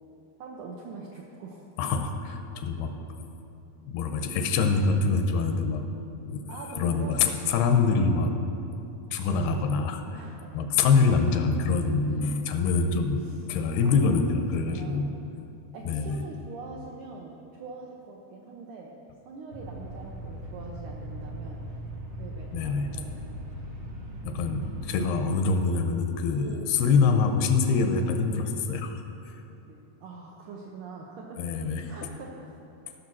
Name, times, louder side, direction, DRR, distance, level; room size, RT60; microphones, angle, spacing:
voice 1, 0.4-1.7 6.5-7.3 10.1-10.6 12.2-12.5 13.2-13.4 13.8-15.1 15.7-19.0 19.2-21.8 22.2-23.6 25.2-25.4 26.3-26.8 27.1-27.5 28.0-28.1 29.7-31.4 31.9-32.5, right 4 dB, 80° right, -1 dB, 1.8 m, -44 dB
voice 2, 1.8-2.9 3.8-5.8 6.2-6.4 6.8-8.3 9.1-10.0 10.5-13.2 13.5-15.1 15.9-16.2 22.5-22.9 24.2-29.0 31.4-31.9, left 4 dB, 85° left, 6 dB, 2.6 m, -25 dB
sound 1, 19.5-25.1, right 1 dB, 65° right, 1.3 m, -39 dB
14.5 x 6.4 x 6.1 m, 2.9 s
omnidirectional pair, 4.6 m